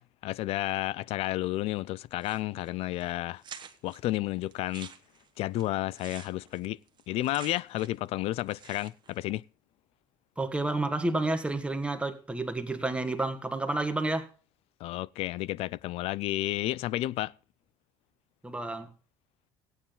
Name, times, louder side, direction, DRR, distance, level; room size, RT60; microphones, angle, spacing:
voice 1, 0.0-3.4 3.8-4.9 5.4-6.8 7.1-9.4 14.8-17.3, left 16 dB, 65° left, 0.4 m, -31 dB
sound 1, 2.2-2.7 3.0-3.1 3.4-4.0 4.5-8.1 8.3-9.2, right 8 dB, 45° right, 1.3 m, -48 dB
voice 2, 10.4-14.3 18.4-18.9, right 2 dB, 10° right, 1.5 m, -30 dB
16.0 x 8.9 x 3.8 m
supercardioid pair, 90°, 11 cm